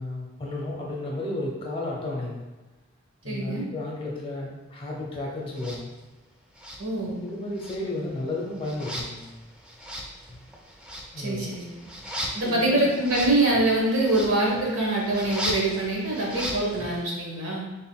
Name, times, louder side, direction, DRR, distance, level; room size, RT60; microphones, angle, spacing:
voice 1, 0.0-2.4 3.2-5.9 7.2-9.3 11.1-11.5 12.4-12.8, left 2 dB, 30° left, -2 dB, 0.8 m, -33 dB
voice 2, 3.2-3.6 6.8-7.2 11.2-11.6 12.3-17.7, right 2 dB, 85° right, -3 dB, 1.1 m, -24 dB
sound 1, 5.5-5.8 6.5-7.3 7.6-17.0, equal, 5° right, 0.4 m, -37 dB
3.9 x 3.6 x 2.2 m, 1.2 s
head